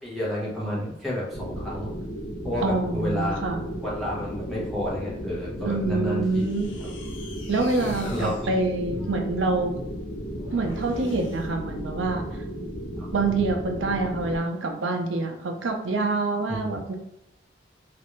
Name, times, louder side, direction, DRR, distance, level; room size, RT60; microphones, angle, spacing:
voice 1, 0.0-1.9 2.4-3.3 3.8-6.4 7.8-8.3 8.9-9.1 16.5-16.8, left 1 dB, ahead, -7 dB, 1.0 m, -31 dB
sound 1, 1.3-14.4, equal, 60° left, 0.9 m, -35 dB
voice 2, 2.6-3.7 5.6-6.7 7.5-9.7 10.5-12.4 13.1-16.9, right 3 dB, 85° right, 3 dB, 0.5 m, -26 dB
sound 2, 6.3-12.2 13.1-13.8, left 2 dB, 80° left, 0.5 m, -44 dB
3.1 x 2.5 x 3.0 m, 0.79 s
head